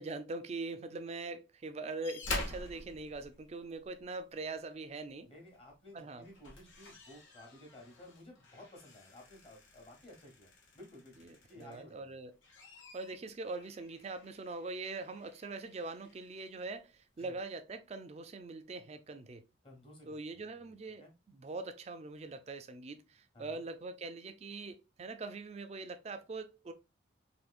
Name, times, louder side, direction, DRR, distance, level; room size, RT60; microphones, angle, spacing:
voice 1, 0.0-5.3 5.9-6.2 11.2-12.3 12.9-19.4 20.0-26.7, right 3 dB, 35° right, 0.4 m, -42 dB
sound 1, 2.0-4.0 5.5-5.7 6.1-11.9 12.3-16.5 17.4-17.5, left 2 dB, 80° left, 1.0 m, -47 dB
voice 2, 5.2-12.2 17.2-17.3 19.6-20.7 21.0-21.1 23.3-23.6, left 1 dB, 30° left, 1.1 m, -55 dB
3.6 x 2.7 x 2.4 m
head